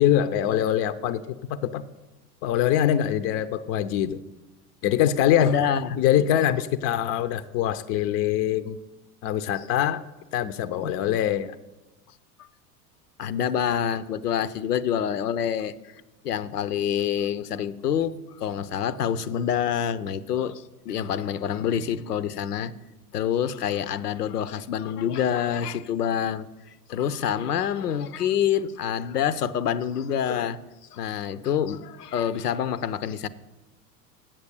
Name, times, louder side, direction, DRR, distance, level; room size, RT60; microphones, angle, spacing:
voice 1, 0.0-1.8 2.4-4.2 4.8-5.5 6.0-8.8 9.2-10.0 10.3-11.6, left 11 dB, 35° left, 0.4 m, -23 dB
voice 2, 5.4-6.0 10.7-11.2 13.2-15.7 16.2-22.7 23.1-26.5 26.9-30.6 30.9-33.3, left 9 dB, 80° left, 0.6 m, -27 dB
8.0 x 7.4 x 6.7 m
figure-of-eight pair, 80°, 46 cm